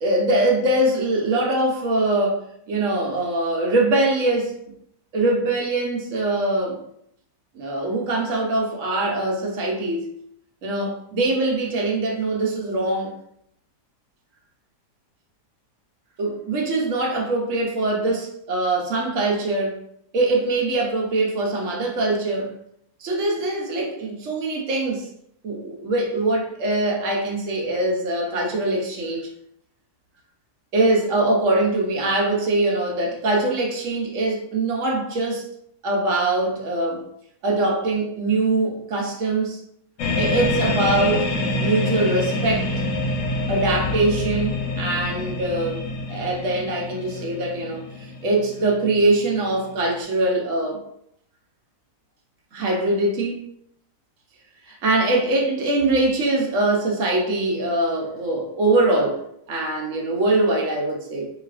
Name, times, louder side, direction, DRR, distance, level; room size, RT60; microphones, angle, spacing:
voice 1, 0.0-4.6 5.1-6.8 7.5-10.1 10.6-13.2 16.2-19.8 20.1-22.5 23.0-25.1 25.4-29.3 30.7-35.5 35.8-37.0 37.4-39.6 40.2-41.3 41.6-42.7 43.5-50.8 52.5-53.4 54.6-59.2 59.5-61.3, right 2 dB, 60° right, 0.9 m, -23 dB
sound 1, 40.0-50.0, left 2 dB, 60° left, 1.0 m, -26 dB
4.0 x 3.1 x 2.4 m
omnidirectional pair, 1.8 m